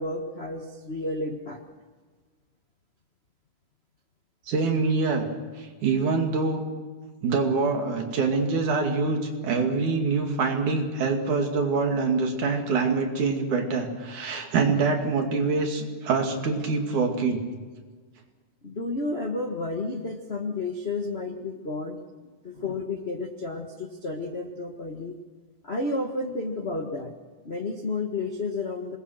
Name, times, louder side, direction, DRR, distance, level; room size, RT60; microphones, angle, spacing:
voice 1, 0.0-1.6 18.6-22.0 22.4-25.2 25.6-27.1 27.4-29.0, left 2 dB, 80° left, 2 dB, 0.5 m, -31 dB
voice 2, 4.5-5.3 5.6-6.6 7.2-17.4, right 4 dB, 65° right, 3 dB, 3.8 m, -25 dB
26.5 x 20.5 x 6.4 m, 1.4 s
omnidirectional pair, 3.7 m